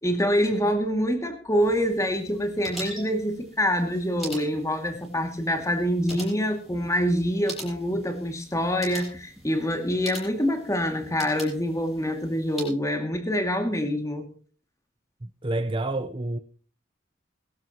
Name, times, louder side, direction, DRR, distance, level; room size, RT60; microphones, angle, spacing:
voice 1, 0.0-14.3, equal, 15° left, 2.4 m, -26 dB
sound 1, 1.6-12.7, equal, ahead, 7.6 m, -43 dB
voice 2, 15.2-16.4, right 2 dB, 25° right, 0.8 m, -29 dB
22.0 x 13.0 x 3.0 m
head